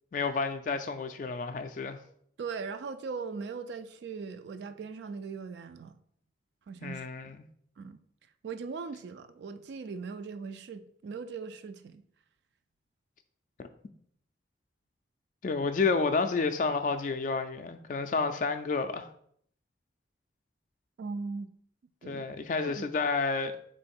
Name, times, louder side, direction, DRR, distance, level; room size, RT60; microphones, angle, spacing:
voice 1, 0.1-2.0 6.8-7.4 13.6-13.7 15.4-19.1 22.0-23.5, left 4 dB, 45° left, 0.3 m, -30 dB
voice 2, 2.4-6.0 6.7-7.0 7.8-8.0 8.4-12.0 21.0-21.5 22.0-22.3 22.6-22.9, right 5 dB, 70° right, 0.3 m, -39 dB
3.8 x 3.1 x 4.3 m
head